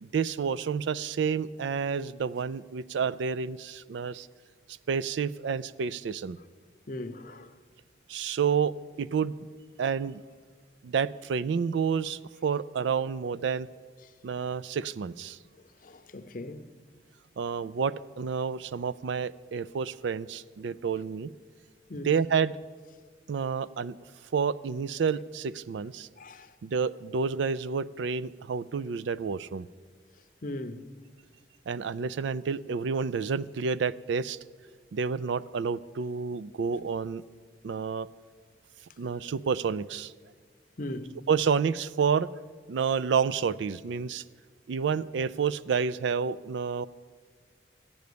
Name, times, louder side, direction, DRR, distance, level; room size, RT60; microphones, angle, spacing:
voice 1, 0.0-4.3 4.7-6.4 8.1-9.5 9.8-10.2 10.8-13.7 14.2-15.4 17.4-21.3 22.0-22.5 23.3-24.0 24.3-26.1 26.6-29.7 31.7-34.4 34.9-37.2 37.6-38.1 39.0-40.1 41.3-42.3 42.7-44.2 44.7-46.9, right 6 dB, 70° right, 0.3 m, -29 dB
voice 2, 6.9-7.5 15.8-16.7 21.9-22.1 26.2-26.5 30.4-30.8 40.8-41.1, left 1 dB, 45° left, 0.6 m, -38 dB
14.0 x 9.4 x 6.8 m
head